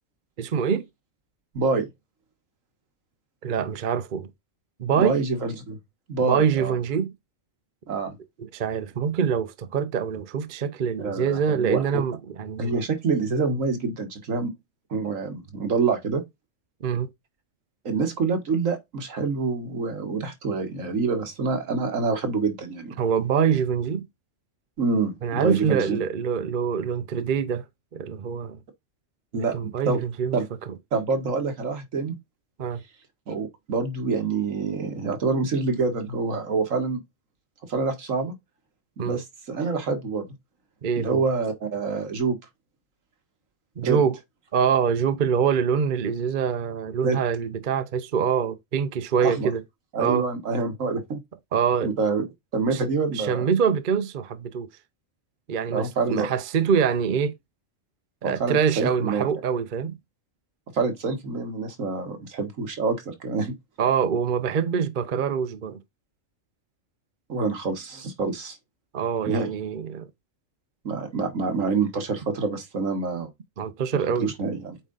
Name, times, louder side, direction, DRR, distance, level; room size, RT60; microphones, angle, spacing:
voice 1, 0.4-0.8 3.4-4.3 4.8-5.2 6.2-7.1 8.5-12.7 16.8-17.1 23.0-24.1 25.2-27.6 27.9-28.6 29.3-30.4 32.6-32.8 39.0-39.2 40.8-41.2 43.8-44.2 44.5-49.6 50.0-50.3 51.5-51.9 52.7-52.8 53.1-54.7 55.5-57.4 58.2-60.0 63.8-65.8 68.9-70.1 73.6-74.3, right 7 dB, 45° right, 0.8 m, -25 dB
voice 2, 1.5-1.9 5.0-5.8 6.1-6.8 7.9-8.2 11.0-11.8 12.6-14.5 14.9-16.2 17.9-23.0 24.8-26.0 29.3-30.0 30.3-30.5 30.9-32.2 33.3-37.0 37.6-38.3 39.0-40.3 41.0-42.4 43.8-44.0 47.0-47.2 49.2-49.5 49.9-51.2 51.8-52.3 52.5-53.5 55.7-56.3 58.2-59.2 60.7-63.6 67.3-68.6 69.3-69.5 70.8-73.3 74.2-74.8, right 4 dB, 75° right, 1.8 m, -26 dB
8.2 x 3.7 x 3.9 m
omnidirectional pair, 1.4 m